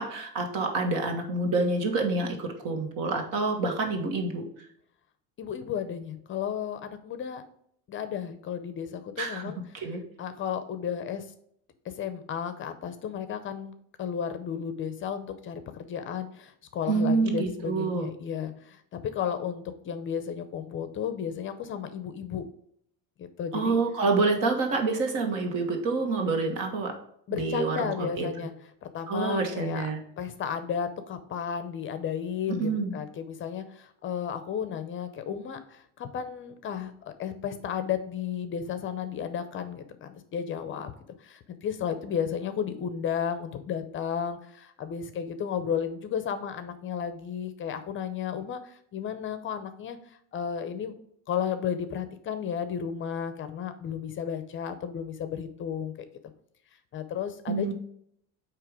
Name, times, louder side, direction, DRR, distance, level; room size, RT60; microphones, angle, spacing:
voice 1, 0.0-4.4 9.2-10.0 16.9-18.1 23.5-26.9 27.3-28.5 29.1-30.0 32.5-32.9 57.5-57.7, right 3 dB, 65° right, 4 dB, 1.6 m, -27 dB
voice 2, 5.4-7.4 7.9-9.6 10.2-11.3 11.8-13.7 14.0-22.4 23.2-23.8 27.3-28.5 28.8-29.9 30.2-40.9 41.2-50.9 51.3-55.9 56.9-57.7, left 8 dB, 35° left, 10 dB, 0.5 m, -33 dB
8.7 x 3.0 x 4.7 m, 0.68 s
cardioid pair, 160°, 36 cm